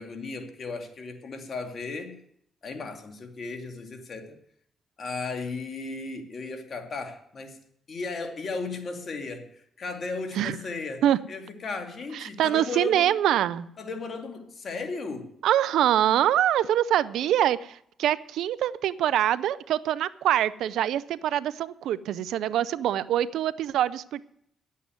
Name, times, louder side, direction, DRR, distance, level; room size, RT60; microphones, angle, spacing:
voice 1, 0.0-2.2 2.6-4.4 5.0-7.6 7.9-13.1 13.8-15.3, left 3 dB, 55° left, 2.3 m, -35 dB
voice 2, 12.1-13.7 15.4-24.2, right 11 dB, 80° right, 0.5 m, -24 dB
11.0 x 8.4 x 9.1 m
supercardioid pair, 50°, 0 cm